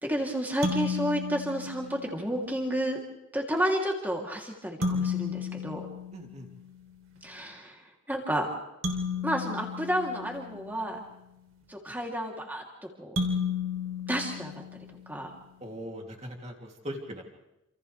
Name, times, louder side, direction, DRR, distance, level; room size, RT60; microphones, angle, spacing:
voice 1, 0.0-3.0 3.3-5.9 7.2-7.8 8.1-8.5 9.2-11.0 11.7-12.6 13.0-13.2 14.1-14.5 15.1-15.3, equal, 10° right, 0 dB, 3.1 m, -31 dB
sound 1, 0.6-2.3 4.8-6.8 8.8-11.0 13.2-15.2, left 4 dB, 80° right, 3.3 m, -33 dB
voice 2, 6.1-6.5 15.6-17.2, equal, 30° right, 1 dB, 2.9 m, -40 dB
28.5 x 27.5 x 3.4 m, 0.91 s
head